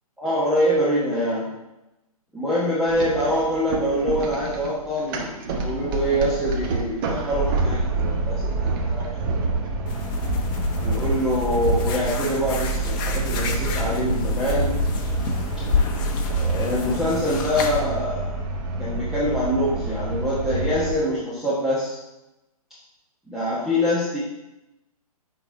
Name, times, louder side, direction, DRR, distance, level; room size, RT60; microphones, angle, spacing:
voice 1, 0.2-1.6 2.3-9.4 10.8-14.7 16.3-18.3 18.8-22.0 23.3-24.2, equal, ahead, -10 dB, 1.1 m, -25 dB
sound 1, 2.9-21.0, right 3 dB, 35° right, 0.9 m, -27 dB
sound 2, 9.9-17.8, left 4 dB, 35° left, 0.9 m, -28 dB
8.1 x 4.0 x 3.8 m, 0.97 s
hypercardioid pair, 135°, 19 cm